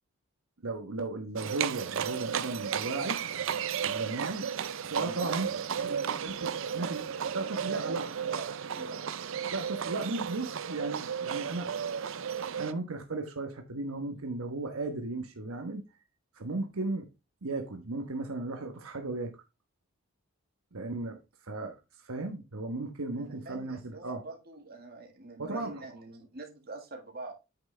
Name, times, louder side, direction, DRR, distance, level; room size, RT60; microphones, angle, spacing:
voice 1, 0.6-3.2 3.8-4.5 4.8-5.5 6.3-6.5 6.7-8.1 9.5-11.7 12.5-15.8 16.3-17.1 17.4-19.3 20.7-24.2 25.4-25.9, right 2 dB, 80° right, 1.1 m, -35 dB
Livestock farm animals working animals, 1.4-12.7, right 8 dB, 65° right, 0.5 m, -34 dB
voice 2, 5.0-6.3 6.7-7.0 7.2-9.0 23.1-27.3, right 2 dB, 45° right, 1.9 m, -45 dB
8.7 x 6.1 x 3.3 m
head